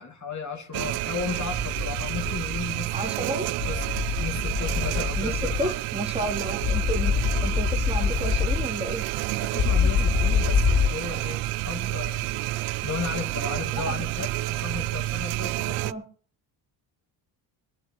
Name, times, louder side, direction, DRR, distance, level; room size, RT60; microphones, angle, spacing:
voice 1, 0.0-3.3 3.6-3.9 4.2-5.7 9.4-12.3 12.8-15.9, left 5 dB, 35° left, 3 dB, 2.7 m, -35 dB
sound 1, 0.7-15.9, right 17 dB, 85° right, 0.6 m, -30 dB
sound 2, 1.4-2.6 3.6-5.6 6.6-8.6 9.6-10.9, left 7 dB, 75° left, 3.5 m, -25 dB
voice 2, 2.9-3.5 5.2-7.2 7.4-9.1 13.7-14.0 15.7-16.0, right 1 dB, 10° right, 1 dB, 3.4 m, -32 dB
26.0 x 9.3 x 3.1 m, 0.42 s
cardioid pair, 85°, 50 cm